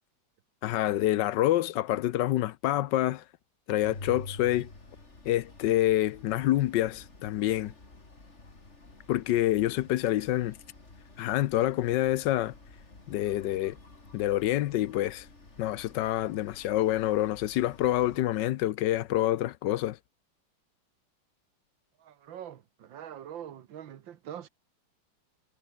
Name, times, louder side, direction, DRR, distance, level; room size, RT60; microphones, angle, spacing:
voice 1, 0.6-3.2 3.7-4.7 5.2-7.7 9.1-10.6 11.2-12.5 13.1-13.8 14.1-15.3 15.6-20.0, left 14 dB, 75° left, 1.3 m, -27 dB
sound 1, 3.8-18.2, left 3 dB, 35° left, 3.8 m, -50 dB
voice 2, 22.0-24.5, right 10 dB, 90° right, 2.0 m, -43 dB
omnidirectional pair, 2.0 m